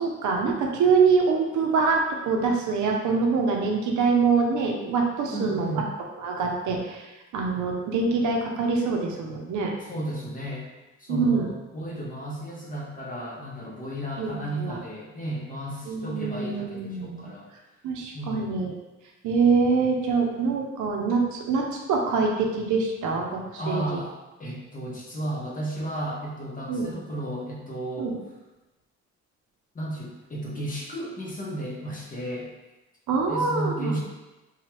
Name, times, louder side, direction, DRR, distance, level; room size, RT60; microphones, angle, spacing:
voice 1, 0.0-5.8 6.2-7.1 7.3-9.7 11.1-11.5 14.2-14.8 15.9-17.3 17.8-18.7 19.2-24.0 26.7-26.9 28.0-28.1 33.1-34.0, right 4 dB, 75° right, 1 dB, 0.6 m, -24 dB
voice 2, 5.3-5.9 9.8-10.6 11.0-17.5 18.1-18.6 23.6-24.1 24.4-28.1 29.7-32.5 33.3-34.0, right 1 dB, 25° left, -4 dB, 0.8 m, -33 dB
2.9 x 2.3 x 3.0 m, 1.1 s
cardioid pair, 90°, 30 cm